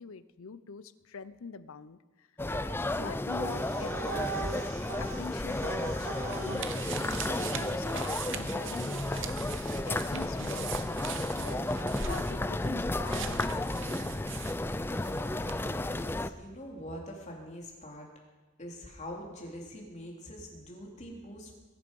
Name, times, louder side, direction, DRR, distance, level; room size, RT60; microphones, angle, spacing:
voice 1, 0.0-2.3 2.9-4.2 5.0-9.5 9.8-14.2, left 5 dB, 80° left, 15 dB, 0.7 m, -45 dB
sound 1, 2.4-16.3, left 1 dB, 10° left, 0.4 m, -33 dB
sound 2, 3.3-8.0, right 4 dB, 75° right, 2.6 m, -40 dB
sound 3, 6.0-15.2 15.5-15.6, right 9 dB, 60° right, 0.8 m, -42 dB
voice 2, 15.0-18.1 18.6-21.5, equal, 35° left, -1 dB, 3.3 m, -44 dB
21.5 x 10.5 x 5.4 m, 1.3 s
head